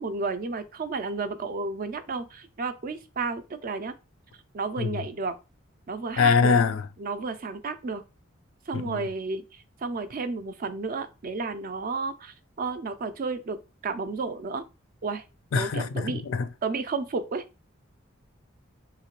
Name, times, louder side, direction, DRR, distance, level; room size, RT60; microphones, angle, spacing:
voice 1, 0.0-4.0 4.5-5.4 5.9-6.6 7.0-8.0 8.7-14.6 15.0-15.2 15.5-16.2 16.6-17.4, right 4 dB, 45° right, 0.4 m, -32 dB
voice 2, 6.2-6.9 8.7-9.1 15.5-16.5, left 5 dB, 75° left, 0.4 m, -24 dB
3.2 x 2.8 x 3.0 m
head